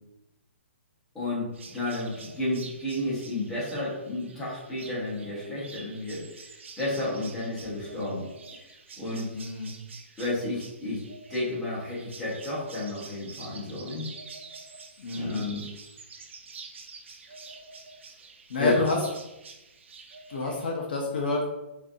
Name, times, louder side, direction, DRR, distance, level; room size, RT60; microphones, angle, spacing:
voice 1, 1.1-8.3 8.5-9.3 10.2-11.0 11.3-14.1 15.1-15.7 18.6-18.8, left 2 dB, 5° left, -9 dB, 0.9 m, -32 dB
sound 1, 1.5-20.7, right 4 dB, 65° right, 0.6 m, -47 dB
voice 2, 9.3-9.7 15.0-15.4 18.5-19.0 20.3-21.5, left 2 dB, 45° left, 0 dB, 0.6 m, -28 dB
4.9 x 2.6 x 2.6 m, 0.97 s
hypercardioid pair, 175°, 7 cm